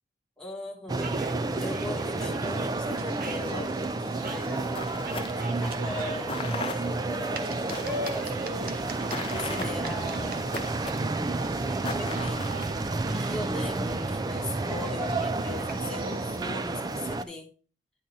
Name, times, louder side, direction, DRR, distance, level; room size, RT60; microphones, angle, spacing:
voice 1, 0.4-1.1 1.6-8.8 9.3-10.5 11.7-12.6 13.2-17.5, left 2 dB, 5° left, -2 dB, 1.3 m, -40 dB
sound 1, 0.9-17.2, right 2 dB, 20° right, 0.3 m, -30 dB
sound 2, 1.0-16.4, right 2 dB, 55° right, 0.7 m, -41 dB
sound 3, 4.3-13.0, left 4 dB, 30° left, 0.5 m, -40 dB
10.0 x 3.8 x 4.1 m, 0.37 s
head